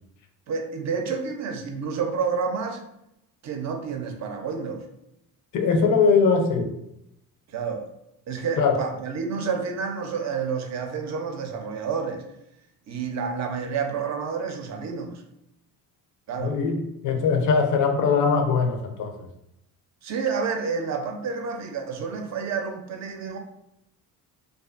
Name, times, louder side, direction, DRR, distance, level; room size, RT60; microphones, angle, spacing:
voice 1, 0.5-2.8 3.4-4.8 7.5-7.9 8.3-12.2 12.9-15.2 16.3-16.6 20.0-23.4, right 5 dB, 45° right, 4 dB, 0.5 m, -29 dB
voice 2, 5.5-6.7 8.6-8.7 16.4-19.3, left 5 dB, 50° left, 5 dB, 0.5 m, -21 dB
2.5 x 2.4 x 2.4 m, 0.80 s
cardioid pair, 90°, 39 cm